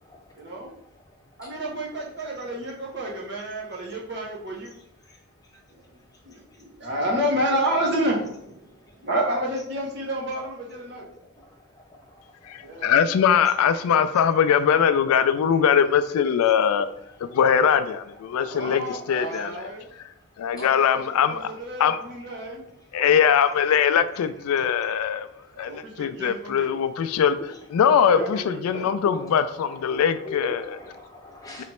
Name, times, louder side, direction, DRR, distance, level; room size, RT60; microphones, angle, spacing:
voice 1, 0.3-0.7 1.4-4.7 5.7-5.9 6.2-11.0 12.6-13.0 18.4-19.9 20.5-22.7 25.5-26.7 28.1-28.9, right 1 dB, 50° right, -2 dB, 1.0 m, -30 dB
voice 2, 1.4-1.7 11.4-11.5 11.7-12.5 12.9-13.9 16.1-16.6 18.1-18.2 18.6-18.7 19.3-19.4 22.3-22.4 23.3-23.5 24.1-24.3 24.9-25.3 26.8-26.9 27.4-28.3 29.0-31.6, left 2 dB, 15° left, -1 dB, 0.7 m, -40 dB
voice 3, 12.5-16.9 17.3-19.5 20.4-21.5 21.8-22.0 22.9-25.3 25.6-27.4 27.7-30.6 31.6-31.7, left 8 dB, 85° left, 13 dB, 0.3 m, -21 dB
3.1 x 3.0 x 4.3 m, 0.73 s
head